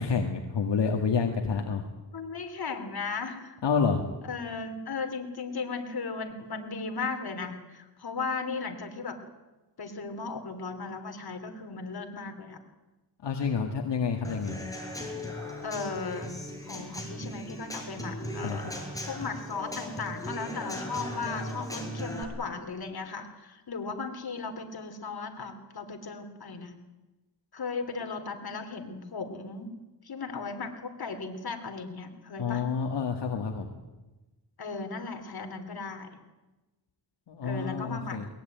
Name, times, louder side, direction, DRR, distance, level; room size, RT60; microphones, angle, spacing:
voice 1, 0.0-1.8 3.6-4.0 13.2-14.6 18.4-18.7 32.4-33.7 37.3-38.3, left 5 dB, 75° left, 3 dB, 2.1 m, -28 dB
voice 2, 2.1-3.6 4.2-9.2 9.8-12.6 15.6-16.4 16.6-26.8 27.5-29.7 30.0-32.6 34.6-36.1 37.4-38.2, left 4 dB, 60° left, 5 dB, 3.3 m, -36 dB
Human voice / Acoustic guitar / Drum, 14.2-22.2, left 1 dB, 10° left, 6.3 m, -38 dB
21.5 x 20.0 x 9.3 m, 1.1 s
cardioid pair, 85°, 42 cm